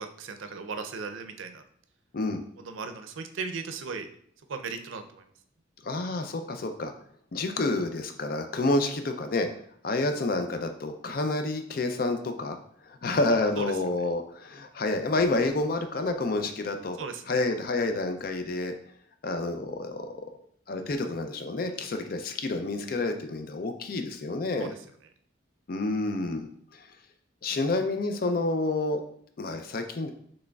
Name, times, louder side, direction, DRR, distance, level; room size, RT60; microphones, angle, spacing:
voice 1, 0.0-1.6 2.6-4.1 4.5-5.3 13.6-13.8 17.0-17.4 21.6-21.9 24.6-24.8, right 4 dB, 80° right, 7 dB, 0.5 m, -37 dB
voice 2, 5.8-6.9 7.3-9.5 9.8-12.6 13.0-17.0 17.3-18.7 19.2-20.1 20.7-24.7 25.7-26.5 27.4-29.0 29.4-30.1, left 2 dB, 50° left, 7 dB, 0.4 m, -29 dB
6.2 x 3.2 x 2.3 m, 0.64 s
head